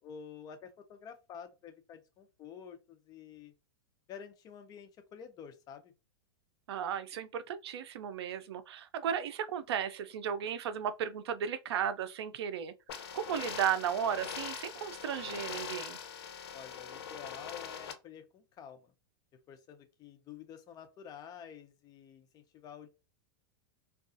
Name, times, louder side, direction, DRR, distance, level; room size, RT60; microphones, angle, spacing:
voice 1, 0.0-3.5 4.1-5.9 16.5-18.9 19.5-22.9, left 7 dB, 30° left, 0.5 m, -49 dB
voice 2, 6.7-16.0, right 8 dB, 80° right, 0.4 m, -35 dB
sound 1, 12.9-17.9, left 7 dB, 75° left, 0.6 m, -42 dB
2.4 x 2.3 x 2.4 m
hypercardioid pair, 130°, 13 cm